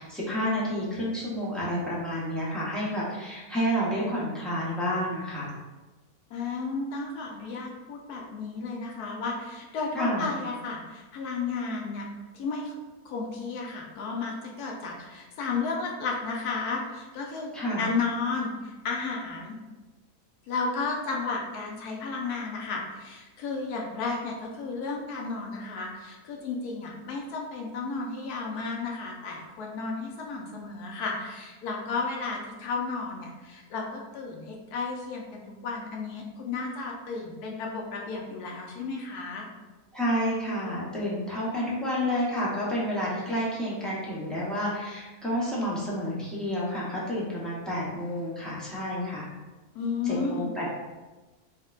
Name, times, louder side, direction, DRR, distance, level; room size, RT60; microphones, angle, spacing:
voice 1, 0.0-5.5 9.9-10.3 17.5-17.9 39.9-49.3 50.3-50.7, equal, ahead, -8 dB, 0.5 m, -30 dB
voice 2, 6.3-12.1 12.3-12.7 13.0-19.5 20.5-39.5 49.7-50.5, left 4 dB, 85° left, 0 dB, 1.1 m, -33 dB
5.0 x 2.1 x 2.4 m, 1.2 s
omnidirectional pair, 1.6 m